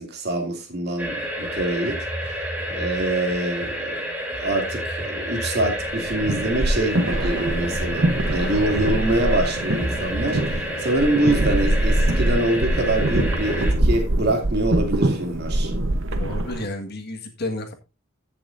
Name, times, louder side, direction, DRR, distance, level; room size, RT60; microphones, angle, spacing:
voice 1, 0.0-2.0 2.7-4.0 4.4-15.7, right 1 dB, 55° right, 2.7 m, -25 dB
sound 1, 1.0-13.7, equal, 10° right, 3.2 m, -29 dB
sound 2, 5.9-16.7, right 1 dB, 70° right, 1.0 m, -23 dB
voice 2, 16.2-17.7, left 2 dB, 55° left, 1.7 m, -31 dB
15.5 x 6.9 x 2.6 m
head